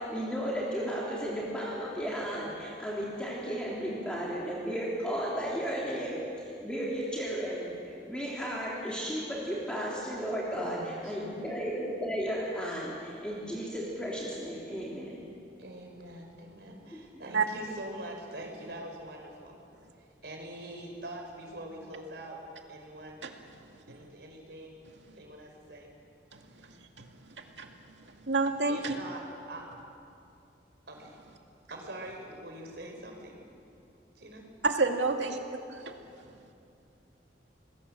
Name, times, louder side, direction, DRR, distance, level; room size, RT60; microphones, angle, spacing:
voice 1, 0.0-15.2, equal, 5° left, -5 dB, 3.2 m, -34 dB
voice 2, 10.6-11.4 15.6-19.6 20.2-22.4 22.7-23.2 23.9-24.8 25.2-25.9 26.6-26.7 28.7-29.7 30.9-31.2 31.7-33.4 34.1-34.4, right 1 dB, 65° right, 2 dB, 4.9 m, -44 dB
voice 3, 28.3-28.9 34.6-35.4, right 3 dB, 90° right, 4 dB, 2.3 m, -27 dB
26.5 x 20.0 x 7.7 m, 2.6 s
head